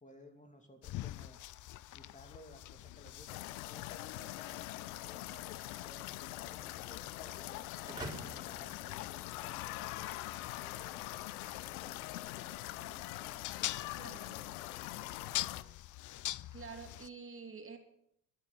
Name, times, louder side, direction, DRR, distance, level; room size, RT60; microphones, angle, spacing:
voice 1, 0.0-1.4 1.9-5.5 5.8-10.1 10.6-12.1 12.3-13.7 14.2-15.7, left 1 dB, 20° left, 5 dB, 2.8 m, -58 dB
sound 1, 0.8-17.1, left 15 dB, 45° left, 0.6 m, -46 dB
sound 2, 3.3-15.6, left 17 dB, 90° left, 0.7 m, -43 dB
sound 3, 7.9-9.8, right 1 dB, 10° right, 4.3 m, -47 dB
voice 2, 13.9-14.4 16.5-17.8, right 5 dB, 30° right, 5 dB, 2.9 m, -48 dB
13.5 x 9.7 x 8.7 m, 0.73 s
hypercardioid pair, 65°, 41 cm